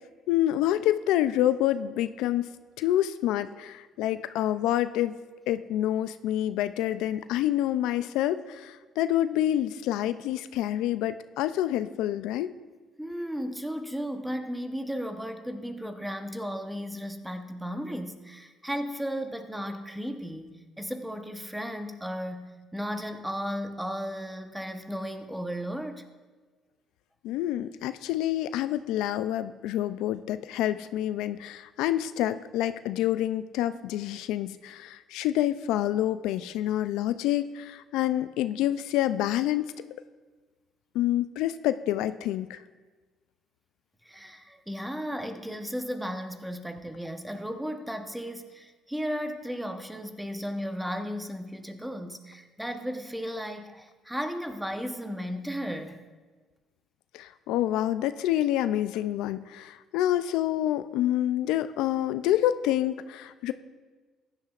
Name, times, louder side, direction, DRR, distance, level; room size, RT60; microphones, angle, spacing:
voice 1, 0.3-2.5 2.8-5.1 5.5-12.5 27.2-39.7 40.9-42.6 57.1-63.5, left 13 dB, 85° left, 12 dB, 0.3 m, -27 dB
voice 2, 13.0-26.1 44.0-56.0, equal, 5° right, 6 dB, 0.9 m, -35 dB
15.5 x 10.5 x 2.4 m, 1.3 s
cardioid pair, 95°, 0 cm